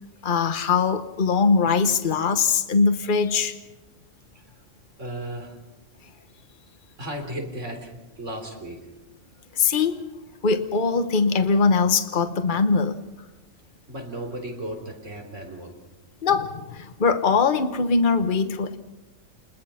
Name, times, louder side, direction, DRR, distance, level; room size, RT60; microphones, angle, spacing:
voice 1, 0.2-3.6 9.5-10.1 10.4-13.0 16.2-18.8, left 5 dB, 40° left, 9 dB, 1.3 m, -21 dB
voice 2, 5.0-5.6 7.0-8.9 13.9-15.8, right 1 dB, 65° right, 3 dB, 4.2 m, -35 dB
29.5 x 21.0 x 5.8 m, 1.0 s
omnidirectional pair, 1.4 m